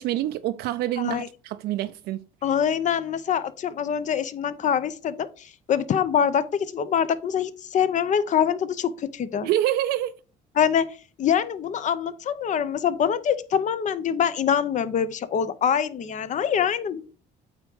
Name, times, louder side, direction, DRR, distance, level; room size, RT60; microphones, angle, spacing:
voice 1, 0.0-2.2 9.4-10.1, right 13 dB, 75° right, 0.4 m, -26 dB
voice 2, 2.4-9.5 10.6-17.1, left 8 dB, 45° left, 0.7 m, -24 dB
8.7 x 3.6 x 4.6 m
cardioid pair, 110°, 17 cm